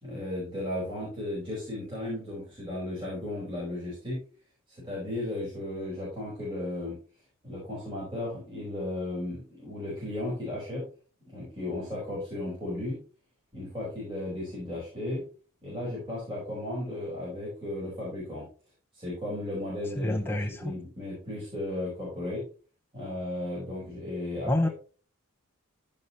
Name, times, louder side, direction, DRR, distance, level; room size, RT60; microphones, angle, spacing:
voice 1, 0.0-4.2 4.7-7.0 7.4-10.9 11.3-13.0 13.5-15.2 15.6-18.5 18.9-22.4 22.9-24.7, left 1 dB, 25° right, -7 dB, 5.0 m, -35 dB
voice 2, 20.0-20.7 24.5-24.7, left 1 dB, 10° left, 2 dB, 0.6 m, -27 dB
15.5 x 5.4 x 3.1 m, 0.38 s
head